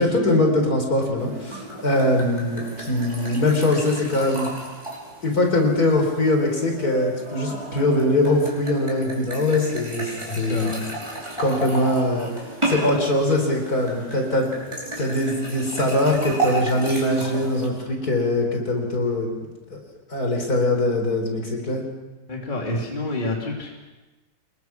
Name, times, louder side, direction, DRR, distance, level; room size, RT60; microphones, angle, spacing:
voice 1, 0.0-4.5 5.2-10.8 11.4-12.3 12.6-14.5 15.0-19.3 20.1-21.8, left 1 dB, 55° left, 2 dB, 4.7 m, -22 dB
sound 1, 1.2-17.7, right 2 dB, 15° right, 5.2 m, -33 dB
voice 2, 10.3-10.8 22.3-23.7, left 2 dB, 25° left, -1 dB, 3.2 m, -28 dB
26.5 x 21.5 x 6.0 m, 1.2 s
omnidirectional pair, 1.9 m